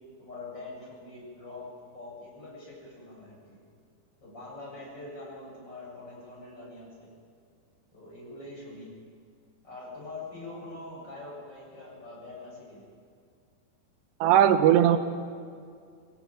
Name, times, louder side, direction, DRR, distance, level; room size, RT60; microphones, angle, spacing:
voice 1, 0.2-3.6 4.2-7.1 7.9-9.0 9.6-12.8, left 2 dB, 25° left, -3 dB, 8.1 m, -44 dB
voice 2, 14.2-15.0, right 10 dB, 90° right, 8 dB, 3.3 m, -19 dB
23.5 x 18.0 x 9.1 m, 2.2 s
omnidirectional pair, 4.8 m